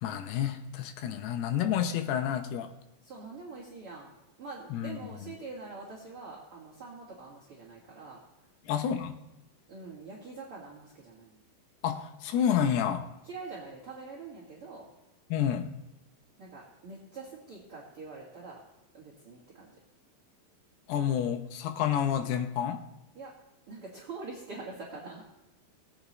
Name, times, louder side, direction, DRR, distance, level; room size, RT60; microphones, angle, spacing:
voice 1, 0.0-2.7 4.7-5.3 8.6-9.2 11.8-13.1 15.3-15.7 20.9-22.9, left 9 dB, 90° left, 7 dB, 2.9 m, -29 dB
voice 2, 3.0-4.1 4.4-8.2 9.7-11.4 13.2-14.9 16.4-18.6 18.9-19.7 23.2-23.3 23.7-25.2, right 3 dB, 45° right, -4 dB, 2.1 m, -44 dB
20.0 x 8.7 x 3.1 m, 0.96 s
omnidirectional pair, 4.5 m